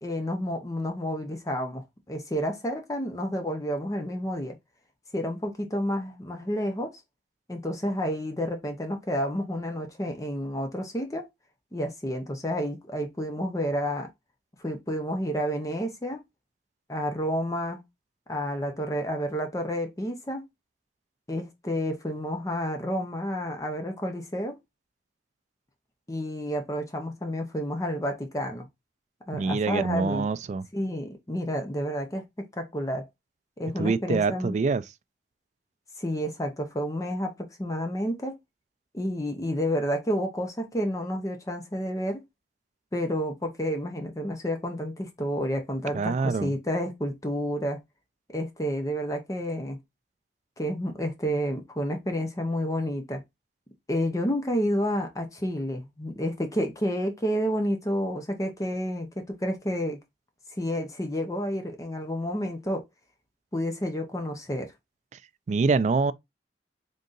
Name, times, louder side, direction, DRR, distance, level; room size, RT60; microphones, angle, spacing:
voice 1, 0.0-4.6 5.1-6.9 7.5-11.3 11.7-14.1 14.6-16.2 16.9-17.8 18.3-20.4 21.3-24.6 26.1-28.7 29.3-30.3 30.7-32.2 32.6-33.1 33.6-34.6 36.0-37.3 37.6-38.4 38.9-42.2 42.9-47.8 48.3-49.8 50.6-53.2 53.9-59.1 59.4-60.0 60.6-62.8 63.5-64.7, equal, 20° left, 0.6 m, -30 dB
voice 2, 29.3-30.7 33.8-34.8 45.9-46.5 65.5-66.1, right 4 dB, 40° right, 0.3 m, -25 dB
3.7 x 2.7 x 3.8 m
head